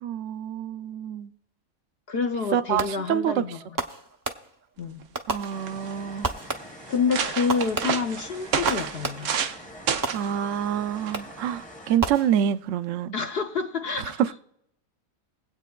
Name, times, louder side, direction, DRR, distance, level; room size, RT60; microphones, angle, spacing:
voice 1, 0.0-1.3 2.5-3.4 5.3-6.3 10.1-13.2 14.0-14.3, right 9 dB, 70° right, 0.8 m, -27 dB
voice 2, 2.1-3.8 4.8-5.1 6.9-9.3 13.1-14.2, left 5 dB, 55° left, 0.7 m, -28 dB
Fireworks, 2.8-3.2 3.8-4.8 5.1-5.9 6.2-6.9 7.5-9.5 10.0-10.7 11.1-11.5 12.0-12.8, right 3 dB, 30° right, 0.4 m, -33 dB
sound 1, 5.0-5.1 5.3-5.9 6.5-6.6 6.9-9.6 9.9-10.3 11.1-11.3, right 7 dB, 90° right, 1.2 m, -29 dB
sound 2, 5.5-12.0, equal, 5° left, 0.7 m, -45 dB
23.0 x 8.3 x 2.3 m
omnidirectional pair, 1.5 m